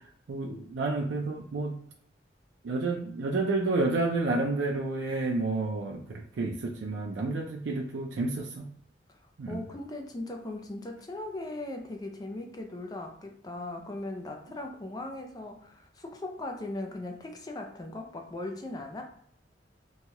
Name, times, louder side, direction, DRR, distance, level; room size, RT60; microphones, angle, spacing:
voice 1, 0.3-1.8 2.6-8.7 9.4-9.6, right 3 dB, 90° right, 0 dB, 0.4 m, -30 dB
voice 2, 9.5-19.0, left 2 dB, 20° left, 3 dB, 0.4 m, -38 dB
3.1 x 2.2 x 2.8 m, 0.65 s
head